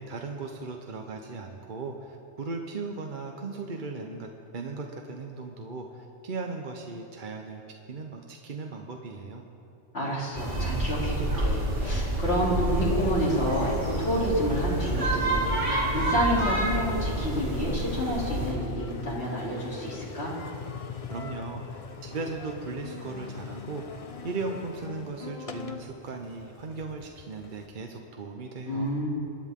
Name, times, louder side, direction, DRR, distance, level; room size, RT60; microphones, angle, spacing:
voice 1, 0.0-4.3 4.5-7.6 7.9-9.4 21.1-23.8 24.2-28.9, right 3 dB, 45° right, 2 dB, 0.9 m, -37 dB
voice 2, 9.9-20.4 28.7-29.1, equal, 55° left, -6 dB, 3.5 m, -29 dB
sound 1, 10.3-18.5, right 1 dB, 75° right, 3.6 m, -28 dB
Engine, 12.7-27.7, left 5 dB, 35° left, 0.6 m, -42 dB
25.0 x 10.5 x 3.7 m, 2.8 s
omnidirectional pair, 1.2 m